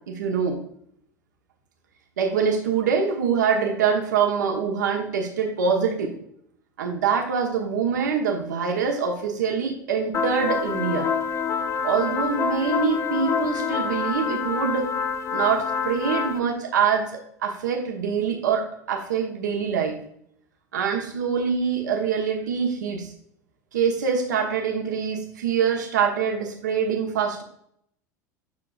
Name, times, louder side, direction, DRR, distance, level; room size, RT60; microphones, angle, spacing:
voice 1, 0.1-0.6 2.2-6.1 6.8-11.1 11.8-14.9 15.3-20.0 20.7-23.1 23.7-27.4, right 6 dB, 75° right, 1 dB, 1.2 m, -24 dB
sound 1, 10.1-16.4, left 6 dB, 30° left, 0.6 m, -27 dB
7.5 x 5.8 x 2.4 m, 0.69 s
figure-of-eight pair, 75°, 10 cm